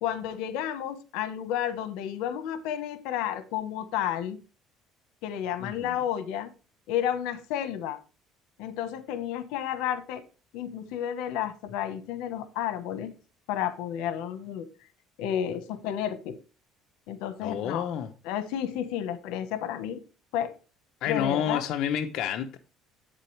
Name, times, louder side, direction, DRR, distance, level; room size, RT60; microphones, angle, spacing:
voice 1, 0.0-4.4 5.2-6.5 6.9-8.0 8.6-10.2 10.5-13.1 13.5-14.7 15.2-16.4 17.1-17.9 18.2-20.0 20.3-20.5 21.1-21.6, left 10 dB, 85° left, 1.1 m, -31 dB
voice 2, 5.6-6.0 17.4-18.1 21.0-22.6, left 9 dB, 60° left, 0.7 m, -29 dB
8.4 x 7.5 x 3.3 m
cardioid pair, 145°, 0 cm